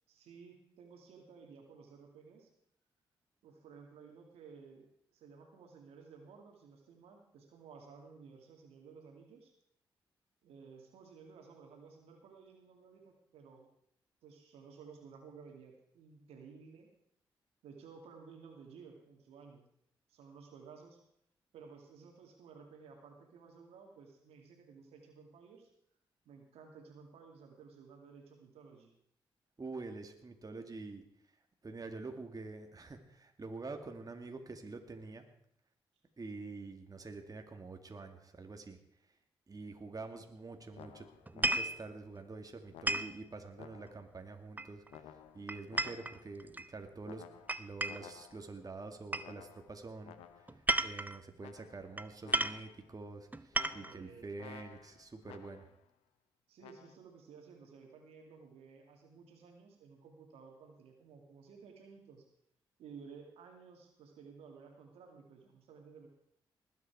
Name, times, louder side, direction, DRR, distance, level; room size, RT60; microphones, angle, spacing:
voice 1, 0.1-2.5 3.4-9.5 10.4-13.7 14.2-16.9 17.6-19.7 20.1-21.0 21.5-25.7 26.3-28.9 53.7-54.3 56.5-62.2 62.8-66.1, right 5 dB, 85° right, 3 dB, 2.3 m, -55 dB
voice 2, 29.6-31.0 31.6-35.2 36.2-38.8 39.5-41.1 41.3-45.1 45.3-47.2 47.6-55.7, right 3 dB, 35° right, 5 dB, 2.0 m, -46 dB
sound 1, 40.7-42.0 42.7-44.2 44.9-46.4 47.0-48.6 49.2-50.6 51.4-52.0 52.2-53.0 53.5-55.8 56.6-56.9, left 10 dB, 90° left, 0.8 m, -55 dB
sound 2, 41.3-41.8 42.9-43.2 44.6-45.0 45.5-46.7 47.5-48.1 49.1-49.3 50.5-51.2 52.0-52.1 52.3-52.6 53.3-54.0, right 1 dB, 15° right, 0.7 m, -33 dB
20.0 x 8.4 x 4.7 m, 0.71 s
supercardioid pair, 45°, 10 cm